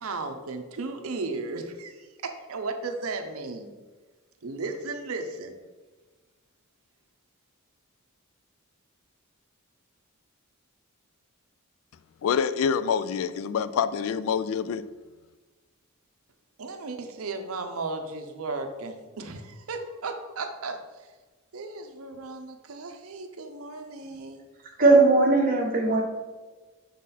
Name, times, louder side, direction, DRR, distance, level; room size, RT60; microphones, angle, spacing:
voice 1, 0.0-3.7 4.4-5.5 16.6-20.8 21.5-24.4, right 3 dB, 75° right, 0.7 m, -35 dB
voice 2, 12.2-14.8, left 7 dB, 70° left, 0.3 m, -26 dB
voice 3, 24.8-26.0, right 3 dB, 40° right, 1.1 m, -18 dB
6.1 x 4.0 x 4.1 m
head